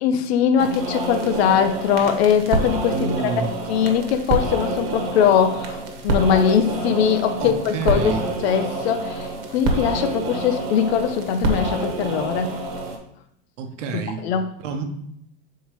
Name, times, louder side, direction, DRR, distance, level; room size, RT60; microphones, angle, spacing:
voice 1, 0.0-3.3 3.7-12.5 13.9-14.5, left 8 dB, 60° left, 8 dB, 0.7 m, -21 dB
sound 1, 0.6-13.0, right 2 dB, 50° right, 1.3 m, -27 dB
voice 2, 2.9-3.5 7.4-8.2 13.6-14.3 14.6-14.8, right 5 dB, 85° right, 6 dB, 1.0 m, -28 dB
6.6 x 4.7 x 3.1 m, 0.76 s
supercardioid pair, 165°, 36 cm